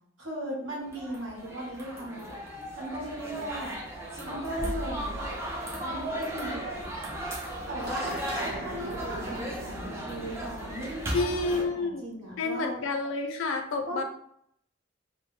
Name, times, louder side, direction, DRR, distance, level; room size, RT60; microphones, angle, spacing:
voice 1, 0.2-2.4 2.8-3.8 4.2-5.2 5.8-6.9 7.7-8.2 8.6-11.4 11.7-12.7 13.9-14.0, right 1 dB, 85° right, -5 dB, 1.0 m, -37 dB
sound 1, 0.9-11.6, right 1 dB, 15° right, 0.4 m, -36 dB
sound 2, 7.9-12.5, right 1 dB, 50° right, 0.6 m, -42 dB
voice 2, 11.1-12.0 12.4-14.0, left 3 dB, 75° left, 5 dB, 0.4 m, -29 dB
2.2 x 2.1 x 3.1 m, 0.68 s
head